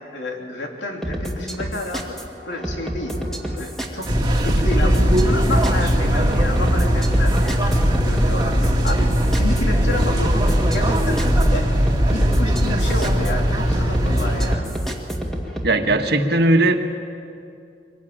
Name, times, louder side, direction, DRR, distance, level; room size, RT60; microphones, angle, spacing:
voice 1, 0.0-3.1 3.5-4.1 4.4-11.2 11.5-11.7 12.1-14.7, left 2 dB, 85° left, 0 dB, 3.5 m, -30 dB
sound 1, 1.0-15.7, equal, ahead, 2.1 m, -30 dB
sound 2, 4.0-14.6, equal, 25° right, 1.9 m, -19 dB
voice 2, 15.6-16.9, right 2 dB, 65° right, 5 dB, 1.6 m, -18 dB
23.5 x 18.5 x 8.9 m, 2.5 s
head